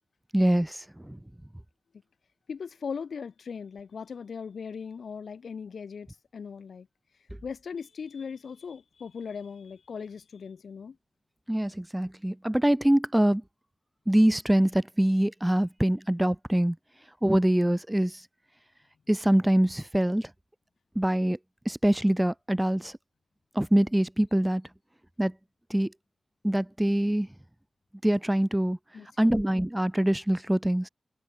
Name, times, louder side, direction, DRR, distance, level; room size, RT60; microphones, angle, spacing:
voice 1, 0.3-1.2 11.5-13.4 14.1-16.8 17.2-18.2 19.1-20.3 21.0-21.4 21.7-22.9 23.5-24.6 25.2-25.3 25.7-25.9 26.4-27.3 28.0-28.8 29.2-30.9, right 1 dB, 5° right, 0.7 m, -24 dB
voice 2, 2.5-6.9 7.1-11.0 28.9-29.3, left 6 dB, 90° left, 4.6 m, -39 dB
wide cardioid pair, 155°, 0 cm